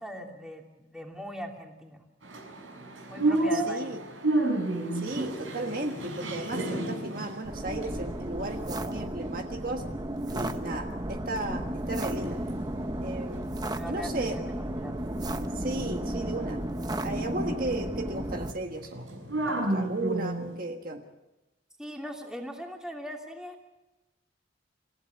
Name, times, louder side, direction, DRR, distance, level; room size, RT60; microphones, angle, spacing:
voice 1, 0.0-2.0 3.1-4.0 13.7-15.0 21.8-23.7, equal, 5° right, 1 dB, 2.9 m, -40 dB
sound 1, 2.2-9.4 9.8-10.7 11.0-20.6, right 2 dB, 85° right, 6.7 m, -33 dB
voice 2, 3.5-4.0 4.9-9.8 10.3-12.4 13.0-13.5 13.9-14.4 15.5-16.6 17.0-19.0 19.4-21.0, right 2 dB, 45° right, 4 dB, 1.5 m, -35 dB
sound 2, 7.4-18.5, right 1 dB, 20° right, 0.9 m, -33 dB
28.0 x 15.5 x 8.3 m, 1.0 s
head